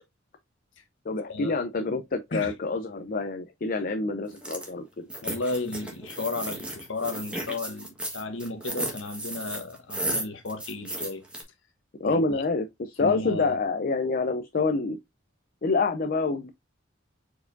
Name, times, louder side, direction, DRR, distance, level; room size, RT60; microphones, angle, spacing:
voice 1, 1.1-5.1 12.0-15.0 15.6-16.5, left 3 dB, 45° left, 0.5 m, -27 dB
sound 1, 4.3-4.7 5.1-11.4, right 1 dB, 5° right, 1.3 m, -34 dB
voice 2, 5.2-11.2 12.0-12.4 13.0-13.5, left 3 dB, 70° left, 1.1 m, -34 dB
4.7 x 4.5 x 2.5 m
head